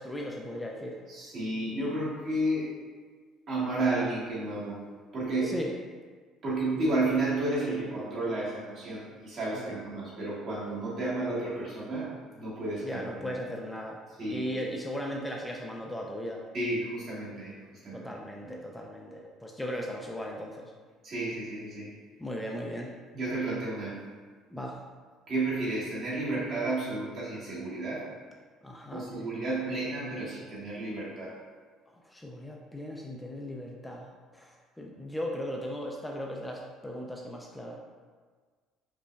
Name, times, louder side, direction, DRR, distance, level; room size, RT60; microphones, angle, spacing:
voice 1, 0.0-1.0 5.4-5.7 9.5-9.8 12.8-14.0 14.3-16.4 17.9-20.7 22.2-22.9 24.5-24.8 28.6-29.0 32.1-37.8, equal, 10° left, 0 dB, 0.3 m, -37 dB
voice 2, 1.1-2.7 3.5-4.8 5.1-5.6 6.4-13.4 14.2-14.5 16.5-17.5 17.8-18.1 18.4-18.6 21.0-21.9 23.1-24.0 25.3-28.1 28.9-31.3, right 2 dB, 50° right, -7 dB, 1.3 m, -32 dB
5.0 x 2.2 x 2.2 m, 1.5 s
cardioid pair, 105°, 0 cm